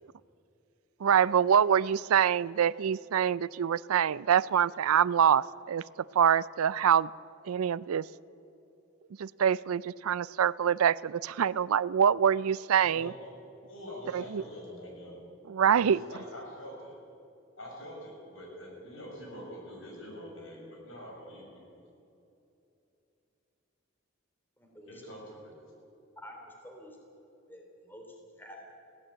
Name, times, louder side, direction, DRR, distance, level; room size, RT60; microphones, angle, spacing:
voice 1, 1.0-5.8 6.1-7.1 7.5-8.1 9.2-13.1 14.1-14.4 15.5-16.0, right 8 dB, 90° right, 20 dB, 0.4 m, -25 dB
voice 2, 12.8-13.3 13.7-15.2 15.7-17.0 17.6-21.6 24.8-25.5, equal, 70° left, 0 dB, 6.4 m, -45 dB
voice 3, 24.6-25.1 26.2-27.0 27.5-28.0 28.4-28.6, equal, 10° left, 1 dB, 3.2 m, -49 dB
20.0 x 16.0 x 8.7 m, 2.8 s
head